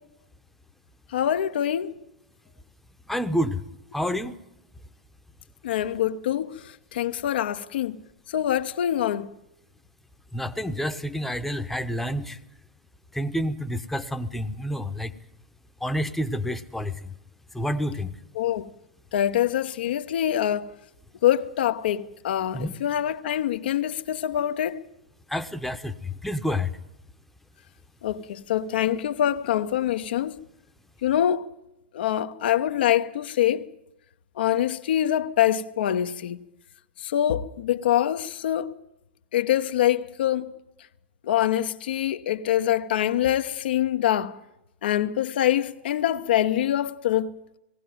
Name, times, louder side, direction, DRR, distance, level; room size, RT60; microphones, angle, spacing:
voice 1, 1.1-1.9 5.6-6.5 6.9-8.0 8.3-9.3 18.4-18.7 19.1-20.7 21.2-24.8 28.0-30.4 31.0-31.5 31.9-33.6 34.4-36.4 37.0-38.7 39.3-40.5 41.2-44.3 44.8-47.3, left 11 dB, 60° left, 0.9 m, -24 dB
voice 2, 3.1-3.6 3.9-4.3 10.3-12.4 13.1-15.1 15.8-17.1 17.5-18.2 22.5-22.7 25.3-26.7, equal, 5° left, 1.0 m, -28 dB
18.5 x 16.5 x 9.2 m
figure-of-eight pair, 100°, 6 cm